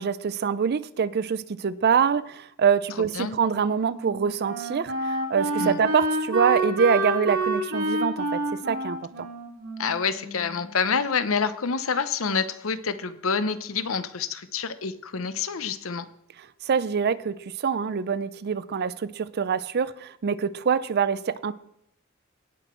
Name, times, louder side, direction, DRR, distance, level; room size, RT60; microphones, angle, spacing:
voice 1, 0.0-9.0 16.7-21.5, right 6 dB, 50° right, 17 dB, 0.4 m, -25 dB
Wind instrument woodwind instrument, 3.9-10.7, right 1 dB, 80° right, 2.4 m, -29 dB
voice 2, 9.8-16.1, left 5 dB, 75° left, 13 dB, 0.8 m, -27 dB
18.0 x 6.0 x 4.5 m, 0.76 s
head